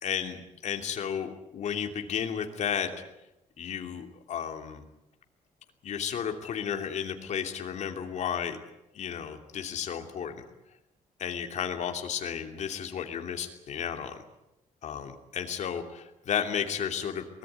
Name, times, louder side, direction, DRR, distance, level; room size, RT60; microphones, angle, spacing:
voice 1, 0.0-2.9 3.6-4.8 5.8-8.6 8.9-10.4 11.2-14.2 14.8-17.4, left 8 dB, 60° left, 5 dB, 2.9 m, -33 dB
23.5 x 19.0 x 9.4 m, 0.90 s
cardioid pair, 135°, 14 cm